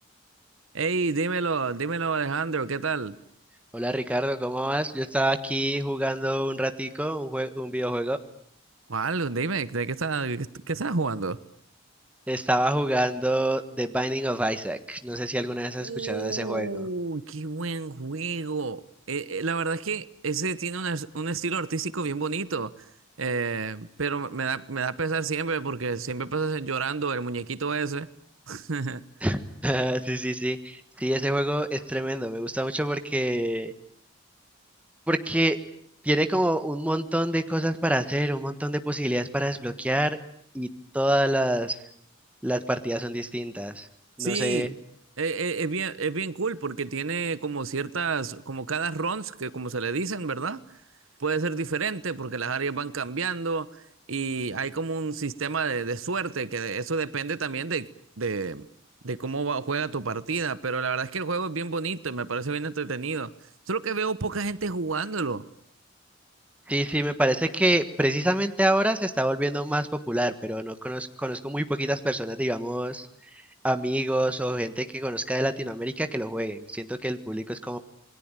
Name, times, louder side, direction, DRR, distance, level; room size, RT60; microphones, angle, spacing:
voice 1, 0.7-3.2 8.9-11.4 15.8-18.8 19.1-22.7 23.2-28.1 28.5-29.0 44.2-44.7 45.2-50.6 51.2-53.8 54.1-57.9 58.2-58.7 59.0-63.3 63.7-65.4, right 4 dB, 75° right, 16 dB, 1.1 m, -29 dB
voice 2, 3.7-8.2 12.3-16.9 29.2-33.7 35.1-35.6 36.0-40.2 40.5-40.7 40.9-41.8 42.4-43.9 44.2-44.7 66.7-73.1 73.3-77.8, right 1 dB, 5° right, 9 dB, 1.4 m, -27 dB
28.0 x 21.5 x 9.0 m, 0.66 s
head